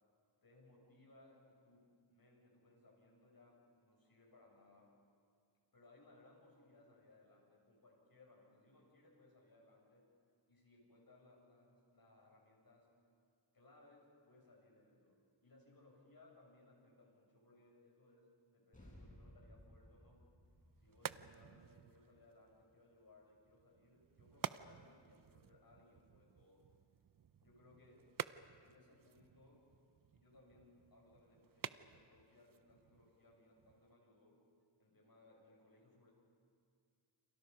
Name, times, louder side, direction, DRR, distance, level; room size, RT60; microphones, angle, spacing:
voice 1, 0.4-5.0 5.7-10.1 10.5-12.9 13.5-20.3 20.8-26.7 27.4-28.1 28.6-29.7 30.1-34.4 34.8-36.1, left 2 dB, 50° left, -1 dB, 7.2 m, -66 dB
sound 1, 18.7-23.5, equal, 15° left, 7.6 m, -62 dB
sound 2, 20.5-33.9, right 8 dB, 50° right, 0.6 m, -52 dB
30.0 x 28.0 x 5.6 m, 2.2 s
wide cardioid pair, 130°, 45 cm